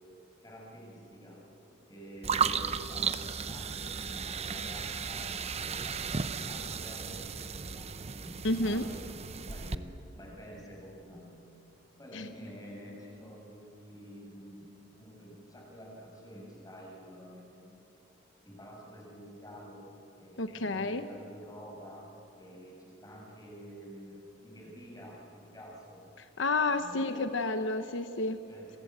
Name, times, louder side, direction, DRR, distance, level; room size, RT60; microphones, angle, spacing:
voice 1, 0.4-1.4 1.9-9.0 9.5-11.5 12.0-14.7 15.0-17.8 18.4-19.8 20.2-22.1 22.3-26.0 26.7-27.3 28.5-28.7, equal, 20° left, -1 dB, 6.8 m, -49 dB
sound 1, 2.2-9.8, right 6 dB, 35° right, 0.8 m, -35 dB
voice 2, 8.4-8.8 12.1-12.3 20.4-21.1 26.4-28.4, left 2 dB, 80° left, 9 dB, 1.0 m, -30 dB
29.5 x 23.0 x 8.1 m, 2.9 s
head